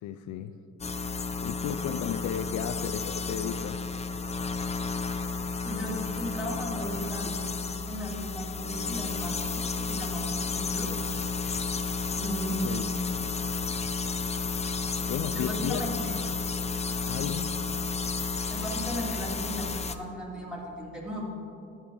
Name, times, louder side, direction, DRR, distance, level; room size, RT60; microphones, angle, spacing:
voice 1, 0.0-0.6 1.4-3.8 12.6-12.9 15.1-15.9 17.1-17.5, left 10 dB, 70° left, 9 dB, 0.5 m, -34 dB
sound 1, 0.8-19.9, left 4 dB, 20° left, 0.5 m, -32 dB
voice 2, 5.6-7.3 7.9-10.9 12.2-13.1 15.3-16.2 18.5-21.2, equal, 5° right, -4 dB, 2.6 m, -36 dB
11.5 x 8.8 x 3.8 m, 2.7 s
cardioid pair, 90°, 30 cm